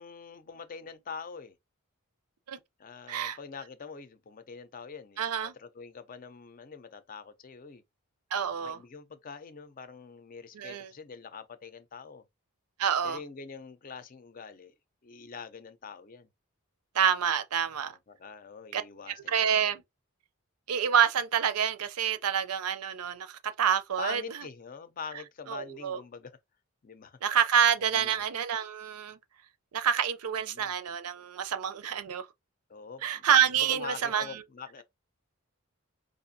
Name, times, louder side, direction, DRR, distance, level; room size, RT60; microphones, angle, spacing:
voice 1, 0.0-1.6 2.8-7.8 8.4-12.2 13.0-14.7 15.0-16.3 17.8-19.7 24.0-26.4 26.8-27.2 27.8-28.2 30.4-30.7 32.7-33.3 33.5-34.8, left 5 dB, 40° left, 0.5 m, -44 dB
voice 2, 5.2-5.5 8.3-8.8 10.5-10.9 12.8-13.2 16.9-17.9 18.7-18.8 19.3-19.8 20.7-24.2 25.5-26.0 27.2-29.2 29.7-32.3 33.0-34.3, right 8 dB, 90° right, 0.5 m, -27 dB
4.8 x 2.5 x 2.6 m
head